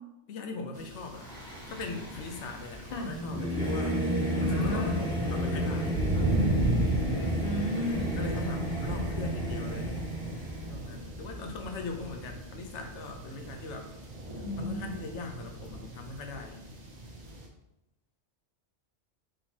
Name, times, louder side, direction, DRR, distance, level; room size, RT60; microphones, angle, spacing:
voice 1, 0.3-4.0 4.3-6.0 7.8-10.0 10.7-13.9 14.6-16.6, left 3 dB, 80° left, 4 dB, 1.0 m, -40 dB
sound 1, 0.7-17.5, right 1 dB, 45° right, 0.7 m, -36 dB
Singing / Musical instrument, 1.2-10.7, equal, 5° left, 1.1 m, -33 dB
voice 2, 4.4-5.0 7.4-8.1 14.4-14.9, left 1 dB, 45° left, 1 dB, 0.6 m, -33 dB
sound 2, 6.1-10.6 11.1-11.2, right 3 dB, 60° right, 1.0 m, -38 dB
4.3 x 3.8 x 2.8 m, 0.91 s
omnidirectional pair, 1.2 m